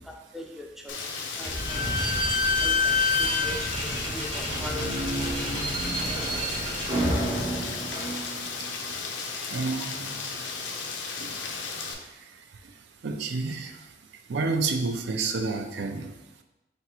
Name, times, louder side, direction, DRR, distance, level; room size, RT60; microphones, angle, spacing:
voice 1, 0.3-1.1 1.4-2.0 2.6-5.2 6.0-6.7 7.0-7.1, left 1 dB, ahead, 1 dB, 0.4 m, -39 dB
Rain, 0.9-11.9, left 4 dB, 80° left, 0.5 m, -35 dB
Slam / Squeak, 1.4-8.7, left 2 dB, 30° right, 0.9 m, -28 dB
voice 2, 9.5-10.2 11.2-11.3 13.0-13.7 14.3-16.1, right 3 dB, 65° right, 6 dB, 0.4 m, -29 dB
4.0 x 3.4 x 3.0 m, 0.97 s
head